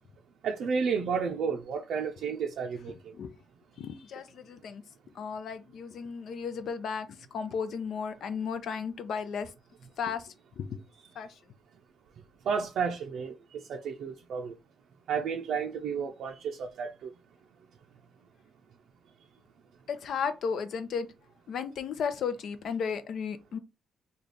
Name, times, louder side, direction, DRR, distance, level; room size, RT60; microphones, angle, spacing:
voice 1, 0.4-2.9 12.5-13.3 13.7-14.5 15.1-16.3 16.6-17.1, right 6 dB, 70° right, 0.5 m, -31 dB
voice 2, 3.8-4.8 5.2-9.5 10.0-10.8 11.2-11.3 19.9-21.1 21.5-23.6, left 6 dB, 65° left, 0.6 m, -34 dB
3.2 x 2.3 x 3.9 m
cardioid pair, 90°, 0 cm